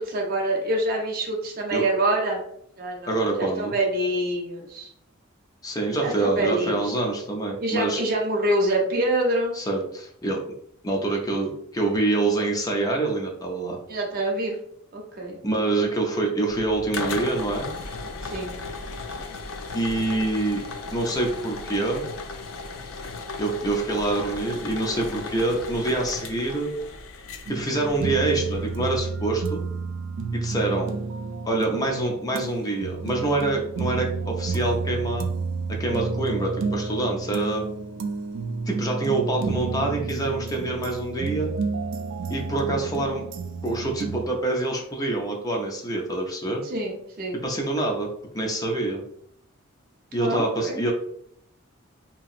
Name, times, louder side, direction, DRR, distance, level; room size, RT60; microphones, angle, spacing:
voice 1, 0.0-2.4 2.8-4.9 6.0-6.8 7.6-9.6 13.9-14.6 14.9-15.4 18.3-18.5 46.6-47.4 50.2-50.8, right 1 dB, 45° right, 0 dB, 0.7 m, -26 dB
voice 2, 3.1-3.7 5.6-8.0 9.5-10.4 10.8-13.8 15.4-17.7 19.7-20.6 20.9-22.1 23.4-26.7 27.5-29.6 30.3-30.9 31.4-35.3 35.7-37.6 38.7-41.5 42.3-43.2 43.6-46.6 47.4-48.1 48.3-49.0 50.1-50.9, right 2 dB, 20° left, 0 dB, 0.4 m, -26 dB
sound 1, 16.5-29.0, left 3 dB, 85° left, 0.4 m, -36 dB
sound 2, 27.5-44.3, right 4 dB, 65° right, 0.3 m, -31 dB
2.8 x 2.6 x 2.4 m, 0.71 s
head